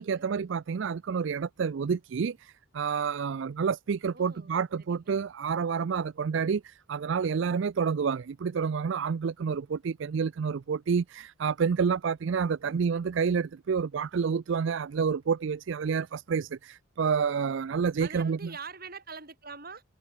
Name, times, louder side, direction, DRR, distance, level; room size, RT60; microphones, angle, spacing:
voice 1, 0.0-18.4, right 6 dB, 60° right, 0.4 m, -29 dB
voice 2, 4.1-4.5 4.8-5.2 12.6-13.3 18.0-19.8, right 4 dB, 45° right, 4.8 m, -45 dB
head